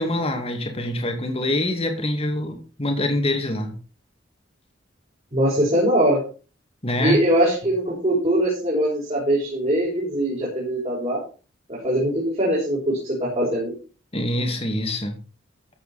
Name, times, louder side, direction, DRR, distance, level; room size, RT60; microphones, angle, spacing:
voice 1, 0.0-3.7 6.8-7.2 14.1-15.2, left 1 dB, 30° left, 4 dB, 2.3 m, -25 dB
voice 2, 5.3-6.2 7.0-11.2 11.7-13.8, right 1 dB, 35° right, -6 dB, 5.5 m, -22 dB
14.0 x 7.9 x 4.3 m, 0.36 s
head